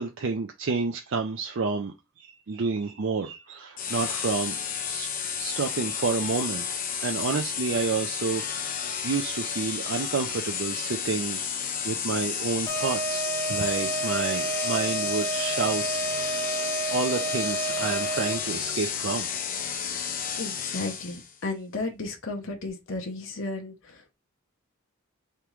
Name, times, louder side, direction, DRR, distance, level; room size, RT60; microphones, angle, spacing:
voice 1, 0.0-5.1 5.4-8.8 9.0-15.8 16.9-19.3, right 4 dB, 60° right, 0.5 m, -30 dB
sound 1, 3.8-21.3, left 7 dB, 40° left, 0.5 m, -32 dB
sound 2, 12.7-18.6, right 3 dB, 15° left, 1.1 m, -30 dB
voice 2, 20.4-24.2, left 3 dB, 60° left, 0.8 m, -34 dB
3.6 x 3.4 x 3.0 m
head